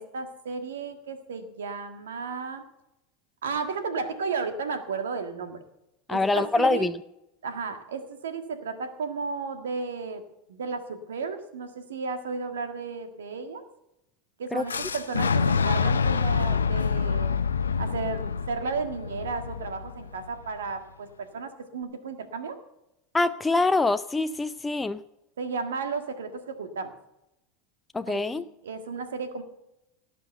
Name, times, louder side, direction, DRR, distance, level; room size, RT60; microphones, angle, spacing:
voice 1, 0.0-2.6 3.4-5.6 6.1-6.9 7.4-10.2 10.5-13.6 14.4-17.3 17.8-22.6 25.4-26.9 28.1-29.4, right 4 dB, 80° right, 8 dB, 1.7 m, -33 dB
voice 2, 6.1-7.0 14.5-14.6 23.1-25.0 27.9-28.4, left 3 dB, 15° left, 10 dB, 0.5 m, -24 dB
Fire / Explosion, 14.7-20.6, left 5 dB, 90° left, 0.7 m, -26 dB
17.5 x 6.2 x 7.9 m, 0.87 s
hypercardioid pair, 85°, 0 cm